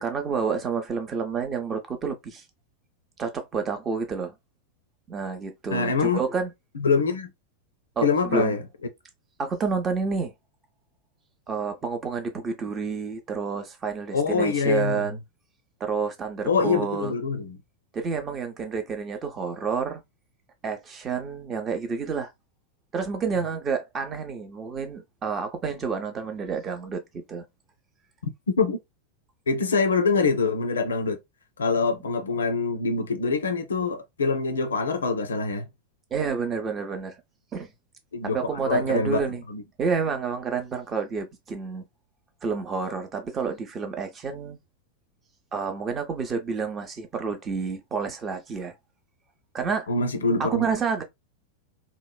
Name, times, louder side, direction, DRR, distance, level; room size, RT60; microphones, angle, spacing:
voice 1, 0.0-2.4 3.2-4.4 5.1-6.5 8.0-8.5 9.4-10.3 11.5-15.2 15.8-17.1 17.9-20.0 20.6-22.3 22.9-27.4 36.1-37.2 37.5-37.7 38.2-39.4 39.8-41.8 42.4-44.6 45.5-48.7 49.5-49.9 50.4-51.0, right 5 dB, 25° right, 0.6 m, -29 dB
voice 2, 5.7-6.2 6.7-7.3 8.0-8.6 14.1-15.1 16.4-17.6 28.5-28.8 29.5-31.2 31.6-35.7 38.1-39.6 49.9-50.6, left 4 dB, 70° left, 0.4 m, -24 dB
2.9 x 2.0 x 2.2 m
figure-of-eight pair, 90°, 0 cm